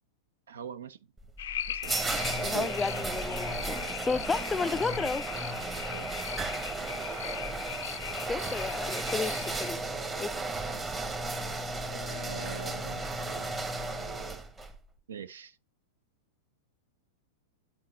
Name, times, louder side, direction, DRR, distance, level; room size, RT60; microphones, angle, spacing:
voice 1, 0.5-1.0 1.7-1.9 2.4-2.7 5.8-6.5 6.9-7.3 11.9-13.1 15.1-15.6, right 7 dB, 85° right, 0.6 m, -43 dB
sound 1, 1.2-14.7, right 2 dB, 15° right, 0.9 m, -34 dB
sound 2, 1.4-9.7, left 10 dB, 75° left, 0.4 m, -39 dB
voice 2, 2.4-5.3 8.3-9.8 10.2-10.4, left 4 dB, 15° left, 0.3 m, -32 dB
8.2 x 4.3 x 4.1 m
hypercardioid pair, 120°, 0 cm